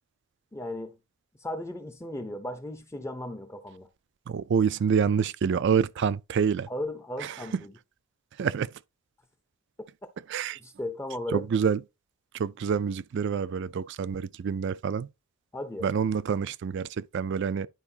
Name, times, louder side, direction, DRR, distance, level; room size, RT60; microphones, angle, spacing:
voice 1, 0.5-1.0 1.4-3.9 6.7-7.7 10.6-11.5 15.5-15.9, left 1 dB, 10° left, 0.5 m, -36 dB
voice 2, 4.3-6.7 7.2-7.6 8.4-8.7 10.3-10.6 11.3-11.8 12.3-15.1 15.8-17.7, right 6 dB, 55° right, 0.3 m, -27 dB
10.5 x 4.6 x 2.7 m
head